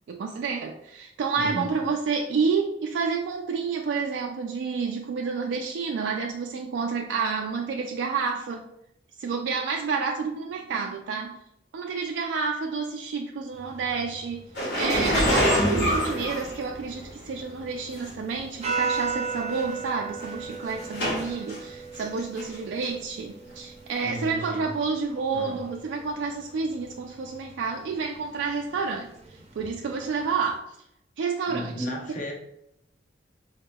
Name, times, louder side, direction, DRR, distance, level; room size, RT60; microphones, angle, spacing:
voice 1, 0.1-8.7 9.2-11.4 11.7-14.4 14.7-30.7 31.2-31.7, right 5 dB, 85° right, 2 dB, 0.3 m, -29 dB
voice 2, 1.4-1.7 24.0-24.7 25.3-25.6 31.4-32.3, equal, 45° left, -1 dB, 0.8 m, -34 dB
sound 1, 13.5-30.6, right 5 dB, 35° right, 0.5 m, -39 dB
sound 2, 14.5-17.1 18.0-18.1 19.0-19.1 19.3-19.6 20.2-21.6 22.0-22.5 22.8-22.9 24.1-24.2, equal, 70° left, 1.3 m, -26 dB
4.0 x 2.8 x 2.2 m, 0.79 s
head